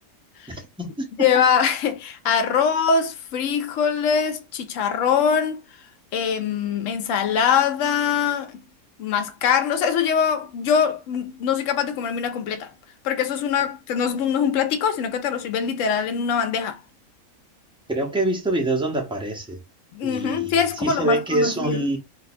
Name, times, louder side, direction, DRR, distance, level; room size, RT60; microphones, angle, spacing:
voice 1, 1.2-5.6 6.1-8.6 9.0-12.7 13.0-16.8 19.9-21.9, left 7 dB, 70° left, 0.9 m, -23 dB
voice 2, 17.9-19.6 20.0-22.0, right 2 dB, 10° right, 0.3 m, -25 dB
2.6 x 2.3 x 4.0 m
omnidirectional pair, 1.6 m